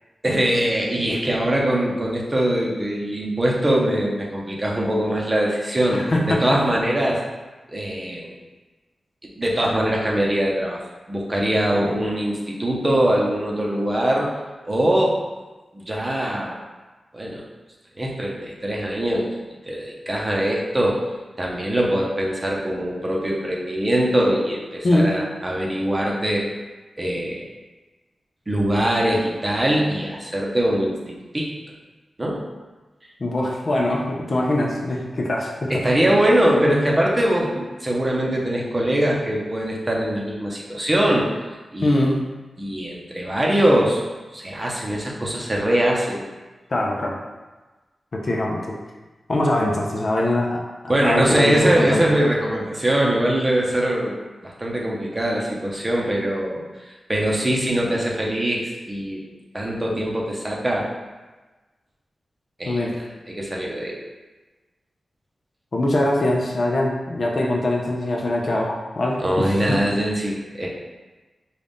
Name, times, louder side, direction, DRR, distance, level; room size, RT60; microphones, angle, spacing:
voice 1, 0.2-7.2 7.7-8.3 9.2-10.8 11.1-14.3 14.6-15.2 15.7-16.6 17.1-17.4 18.0-19.3 19.6-21.0 21.4-26.5 27.0-27.5 28.5-31.0 31.3-31.5 32.2-32.4 35.7-41.3 41.7-42.1 42.6-44.0 44.3-46.2 50.9-54.1 54.4-59.2 59.5-60.9 62.6-63.0 63.3-64.0 69.2-70.7, right 1 dB, 25° right, -3 dB, 0.7 m, -22 dB
voice 2, 5.9-6.6 11.7-11.9 24.8-25.1 33.2-35.8 41.8-42.2 46.7-47.1 48.1-48.8 49.3-52.1 62.7-63.0 65.7-69.8, left 1 dB, 50° left, -1 dB, 0.6 m, -22 dB
3.9 x 2.4 x 3.5 m, 1.2 s
wide cardioid pair, 80°, 0 cm